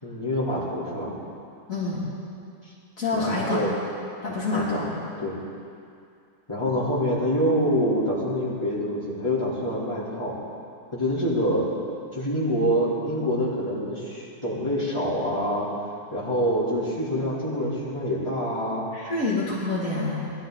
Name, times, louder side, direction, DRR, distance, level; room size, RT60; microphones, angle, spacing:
voice 1, 0.0-1.2 3.2-3.7 4.5-4.9 5.2-5.3 6.5-10.4 10.9-11.7 12.1-15.7 16.1-18.9, equal, 15° left, -9 dB, 3.8 m, -26 dB
voice 2, 1.7-2.0 3.0-3.6 4.2-4.9 18.9-20.3, left 3 dB, 55° left, -9 dB, 2.9 m, -27 dB
20.0 x 13.0 x 4.0 m, 2.5 s
omnidirectional pair, 1.7 m